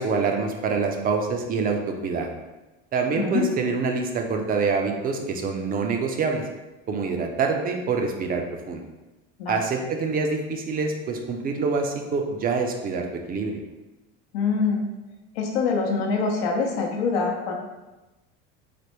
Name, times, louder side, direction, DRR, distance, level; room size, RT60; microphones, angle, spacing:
voice 1, 0.0-2.3 2.9-6.4 6.9-8.8 9.5-13.6, right 4 dB, 30° right, 3 dB, 0.4 m, -26 dB
voice 2, 14.3-14.8 15.4-17.5, left 4 dB, 90° left, 1 dB, 0.7 m, -24 dB
3.3 x 2.1 x 3.0 m, 1.1 s
supercardioid pair, 110°, 30 cm